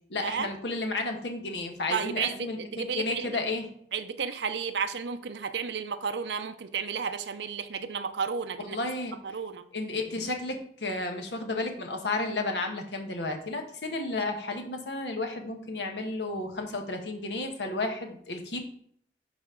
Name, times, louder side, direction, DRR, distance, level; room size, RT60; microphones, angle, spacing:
voice 1, 0.1-3.7 8.7-9.1 9.7-18.6, left 2 dB, 75° left, 4 dB, 1.2 m, -32 dB
voice 2, 1.9-3.3 3.9-8.8 9.2-9.6, right 6 dB, 80° right, 10 dB, 0.6 m, -32 dB
10.5 x 4.2 x 3.7 m, 0.63 s
head